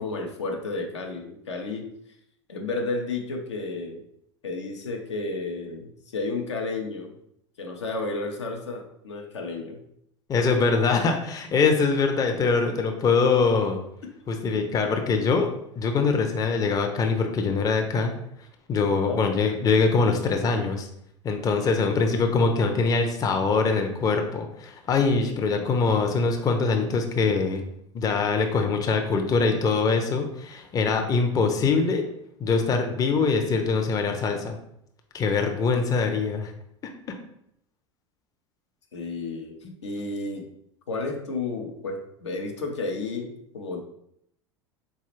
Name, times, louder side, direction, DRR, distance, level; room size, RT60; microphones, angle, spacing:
voice 1, 0.0-1.9 2.5-4.0 4.4-7.1 7.6-9.8 14.0-14.1 19.1-19.2 25.2-25.7 38.9-39.6 39.8-40.5 40.9-43.8, left 3 dB, 80° left, 2 dB, 0.7 m, -32 dB
voice 2, 10.3-13.8 14.3-15.5 15.8-18.1 18.7-20.9 21.2-27.6 27.9-32.0 32.4-34.6 35.1-36.5, left 4 dB, 25° left, 4 dB, 0.5 m, -23 dB
4.0 x 2.3 x 3.0 m, 0.75 s
figure-of-eight pair, 80°, 15 cm